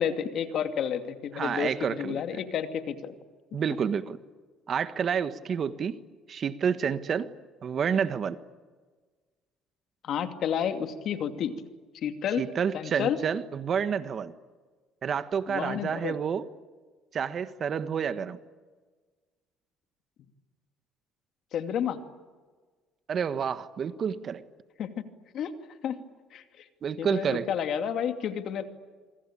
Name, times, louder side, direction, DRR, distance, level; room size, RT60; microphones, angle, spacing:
voice 1, 0.0-3.1 10.0-11.5 12.0-12.4 12.7-13.2 15.5-16.2 21.5-22.0 24.8-25.0 25.3-25.5 25.8-26.0 26.3-26.6 27.0-28.6, left 8 dB, 60° left, 7 dB, 2.5 m, -30 dB
voice 2, 1.3-2.4 3.5-4.2 4.7-5.9 6.3-7.3 7.6-8.4 12.4-14.3 15.0-16.4 17.1-18.4 23.1-24.4 26.8-27.5, right 7 dB, 45° right, 12 dB, 1.5 m, -29 dB
27.0 x 24.5 x 8.8 m, 1.4 s
cardioid pair, 100°, 0 cm